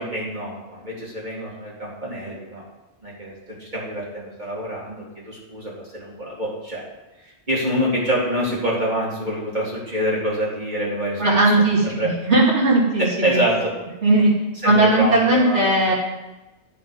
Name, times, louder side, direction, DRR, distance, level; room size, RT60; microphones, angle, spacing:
voice 1, 0.0-2.6 3.0-3.3 3.6-6.8 7.2-12.1 13.0-13.7 14.6-15.9, equal, 40° right, -5 dB, 3.1 m, -26 dB
voice 2, 11.2-13.1 14.0-14.3 14.6-15.9, right 2 dB, 80° right, -5 dB, 2.9 m, -17 dB
9.9 x 7.8 x 5.2 m, 1.1 s
omnidirectional pair, 1.2 m